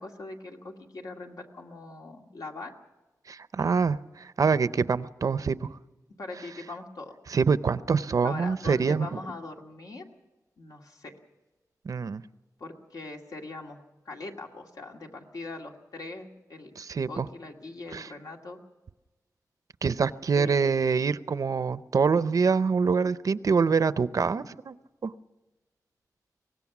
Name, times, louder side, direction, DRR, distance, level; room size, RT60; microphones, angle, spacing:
voice 1, 0.0-2.7 6.2-7.2 8.2-10.1 10.6-11.1 12.6-16.7 17.1-18.6 20.3-20.7 21.9-22.0, left 3 dB, 70° left, 1 dB, 2.2 m, -41 dB
voice 2, 3.3-5.8 7.3-9.2 11.8-12.2 16.8-17.3 17.9-18.1 19.8-24.8 25.0-25.1, right 5 dB, 60° right, 14 dB, 0.6 m, -25 dB
24.0 x 19.0 x 6.0 m, 1.1 s
wide cardioid pair, 115°, 7 cm